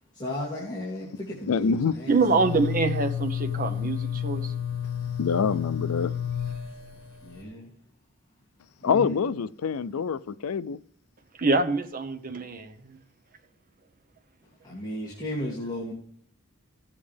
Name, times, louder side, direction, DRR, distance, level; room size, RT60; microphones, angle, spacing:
voice 1, 0.1-2.2 7.2-7.7 8.8-9.2 14.6-15.9, left 1 dB, 20° left, 2.4 m, -34 dB
voice 2, 1.5-1.9 5.2-6.1 8.8-10.8, left 6 dB, 85° left, 0.4 m, -26 dB
sound 1, 2.1-7.4, left 9 dB, 70° left, 1.7 m, -31 dB
voice 3, 2.1-4.5 11.4-13.0, right 3 dB, 40° right, 1.0 m, -25 dB
16.0 x 7.4 x 3.4 m
head